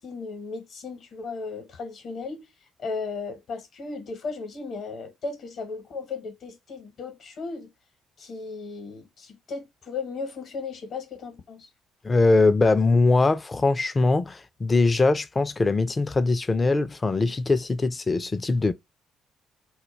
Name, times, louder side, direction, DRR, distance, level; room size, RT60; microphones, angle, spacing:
voice 1, 0.0-2.5 2.8-7.7 8.2-11.7, left 4 dB, 50° left, 0.9 m, -36 dB
voice 2, 12.0-18.7, left 3 dB, 25° left, 0.4 m, -22 dB
2.2 x 2.2 x 3.0 m
figure-of-eight pair, 45°, 0 cm